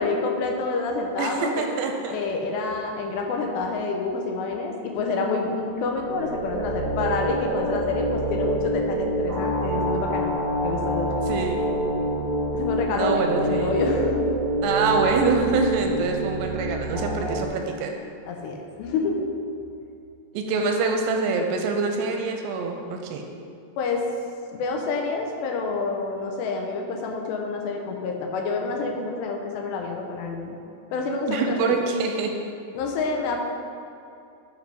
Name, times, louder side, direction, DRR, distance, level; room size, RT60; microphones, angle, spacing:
voice 1, 0.0-1.7 2.1-10.4 10.6-11.1 12.5-14.3 18.3-19.3 23.8-24.1 24.5-30.6 30.9-31.8 32.7-33.4, left 3 dB, 80° left, 2 dB, 2.8 m, -28 dB
voice 2, 1.2-2.2 11.3-11.7 12.9-13.8 14.6-17.9 20.3-23.2 31.3-32.3, right 4 dB, 85° right, 3 dB, 2.7 m, -25 dB
sound 1, 5.9-17.5, right 1 dB, 60° right, 1.4 m, -27 dB
9.5 x 4.7 x 5.3 m, 2.7 s
omnidirectional pair, 5.1 m